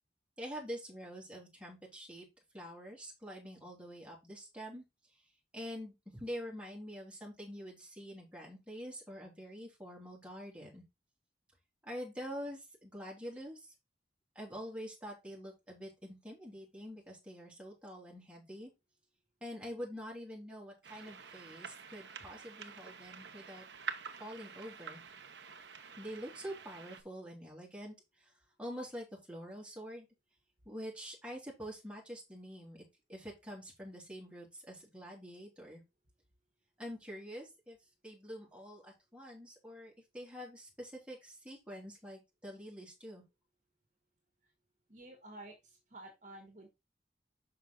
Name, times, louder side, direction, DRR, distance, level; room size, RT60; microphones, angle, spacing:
voice 1, 0.4-2.2 2.5-4.8 5.5-10.8 11.8-13.7 14.3-18.7 19.4-23.6 24.2-25.0 26.0-28.3 28.6-30.1 30.6-32.8 33.1-35.8 36.8-37.8 38.0-43.2, equal, 5° right, -3 dB, 3.4 m, -46 dB
sound 1, 20.8-27.0, right 6 dB, 70° right, 0.9 m, -47 dB
voice 2, 44.9-46.7, right 1 dB, 45° right, 2 dB, 1.9 m, -51 dB
6.2 x 5.7 x 3.8 m, 0.23 s
head